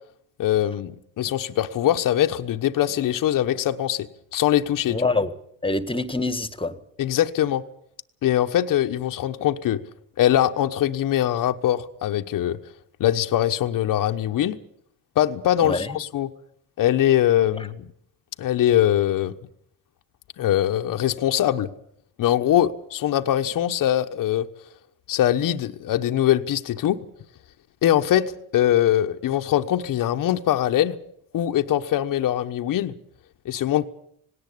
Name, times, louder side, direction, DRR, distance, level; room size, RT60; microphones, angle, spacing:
voice 1, 0.4-4.1 4.3-5.0 7.0-7.6 8.2-9.8 10.2-12.6 13.0-14.6 15.2-16.3 16.8-17.9 18.4-19.3 20.4-21.7 22.2-24.5 25.1-27.0 27.8-30.9 31.3-32.9 33.4-33.9, left 12 dB, 55° left, 1.2 m, -22 dB
voice 2, 4.9-5.3 5.6-6.7 15.6-15.9, left 3 dB, 15° left, 1.7 m, -25 dB
18.5 x 18.0 x 8.5 m
supercardioid pair, 80°, 38 cm